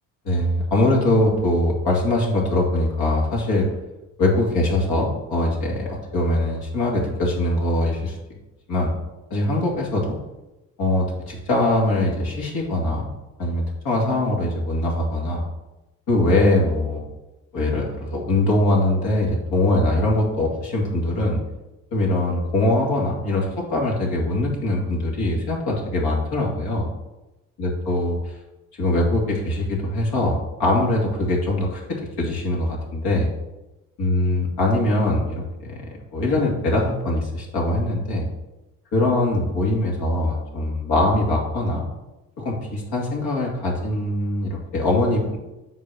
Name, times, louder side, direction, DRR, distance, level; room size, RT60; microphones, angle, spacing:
voice 1, 0.2-3.7 4.2-8.2 8.7-8.9 9.3-10.2 10.8-13.1 13.4-15.4 16.1-17.0 17.5-21.4 21.9-26.9 27.6-28.2 28.8-33.3 34.0-38.3 38.9-41.9 42.4-45.4, left 1 dB, 65° left, -2 dB, 2.6 m, -22 dB
7.2 x 4.0 x 6.4 m, 1.0 s
hypercardioid pair, 55°, 41 cm